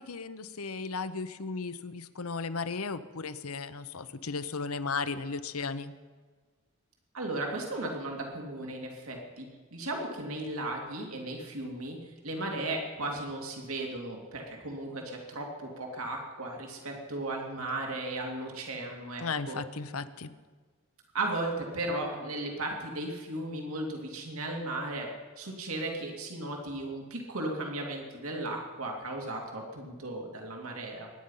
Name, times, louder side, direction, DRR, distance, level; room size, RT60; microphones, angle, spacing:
voice 1, 0.0-5.9 19.2-20.3, left 4 dB, 90° left, 12 dB, 0.9 m, -35 dB
voice 2, 7.1-19.6 21.1-25.1 25.4-31.1, right 2 dB, 85° right, 1 dB, 2.6 m, -36 dB
23.0 x 10.5 x 5.6 m, 1.4 s
head